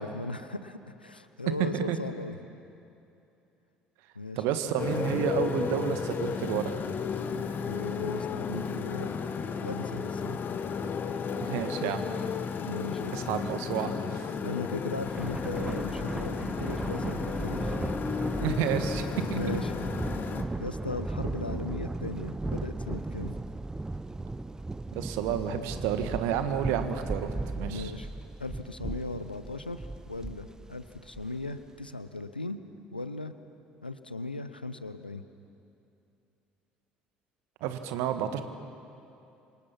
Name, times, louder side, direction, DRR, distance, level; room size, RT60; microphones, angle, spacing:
voice 1, 0.0-2.4 4.1-4.4 7.7-9.1 9.6-10.4 12.7-13.2 14.4-17.8 19.3-19.8 20.6-23.3 27.7-28.1 28.4-32.6 32.9-33.3 33.8-35.2, left 2 dB, 90° left, 11 dB, 0.8 m, -38 dB
voice 2, 4.4-6.7 11.4-12.0 13.1-14.3 18.4-19.0 19.3-19.4 24.9-27.9 37.6-38.4, right 9 dB, 60° right, 9 dB, 1.6 m, -30 dB
Motorcycle, 4.8-20.4, left 6 dB, 40° left, 1.5 m, -33 dB
Thunder, 15.0-31.6, right 2 dB, 15° right, 0.8 m, -36 dB
28.0 x 25.5 x 5.9 m, 2.8 s
figure-of-eight pair, 55°, 5 cm